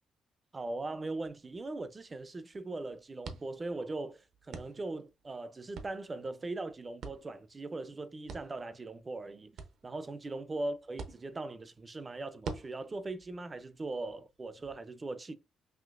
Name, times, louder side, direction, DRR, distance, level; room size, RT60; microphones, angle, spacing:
voice 1, 0.5-9.6 9.8-15.3, right 2 dB, 20° right, 0.4 m, -40 dB
sound 1, 0.6-14.7, right 4 dB, 65° right, 0.6 m, -50 dB
5.6 x 2.8 x 2.4 m
cardioid pair, 155°, 0 cm